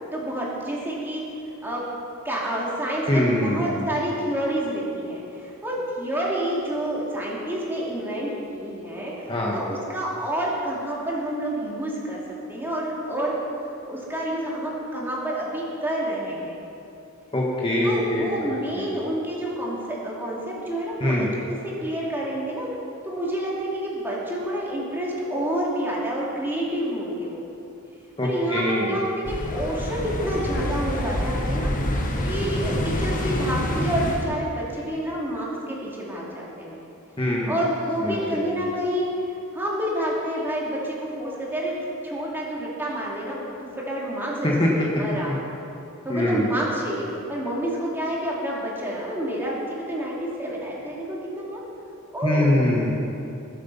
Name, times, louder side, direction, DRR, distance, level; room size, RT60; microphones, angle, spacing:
voice 1, 0.1-1.2 1.6-1.8 2.2-12.2 12.5-13.4 13.8-16.5 17.8-22.7 23.0-27.4 28.2-31.7 32.2-36.8 37.5-41.8 42.0-45.3 46.0-51.6 52.1-52.6, right 1 dB, 10° right, -5 dB, 2.7 m, -28 dB
voice 2, 3.1-3.8 9.3-9.6 17.3-18.8 21.0-21.3 28.2-28.9 37.2-37.5 38.0-38.4 44.4-44.7 45.3-45.4 46.1-46.5 52.2-52.9, left 1 dB, 25° left, -3 dB, 1.5 m, -23 dB
sound 1, 29.2-34.3, left 1 dB, 40° left, 1.3 m, -26 dB
20.0 x 8.1 x 5.6 m, 2.8 s
head